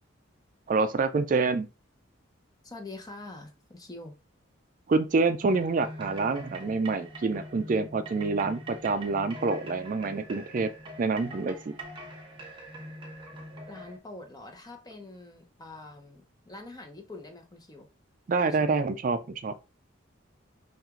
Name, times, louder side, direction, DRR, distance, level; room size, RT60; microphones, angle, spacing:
voice 1, 0.7-1.7 4.9-10.7 11.0-11.7 18.3-19.5, right 4 dB, 40° right, 0.3 m, -27 dB
voice 2, 2.6-4.2 13.7-17.9 18.6-18.8, left 2 dB, 20° left, 0.8 m, -45 dB
sound 1, 5.5-14.0, right 1 dB, 25° right, 1.0 m, -43 dB
5.8 x 2.5 x 3.6 m
head